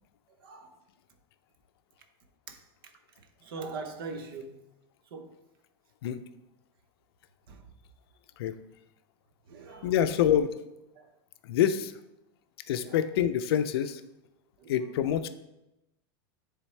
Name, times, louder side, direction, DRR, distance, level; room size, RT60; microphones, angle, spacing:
voice 1, 0.4-0.8 2.5-2.6 3.4-4.7 5.1-5.4 7.5-7.7 9.5-10.1 10.9-11.1 12.8-13.0 14.6-14.7, right 4 dB, 65° right, 0.8 m, -42 dB
voice 2, 9.8-10.5 11.4-11.9 12.7-14.0 14.7-15.3, left 10 dB, 80° left, 0.5 m, -26 dB
10.5 x 3.5 x 3.3 m
supercardioid pair, 170°, 13 cm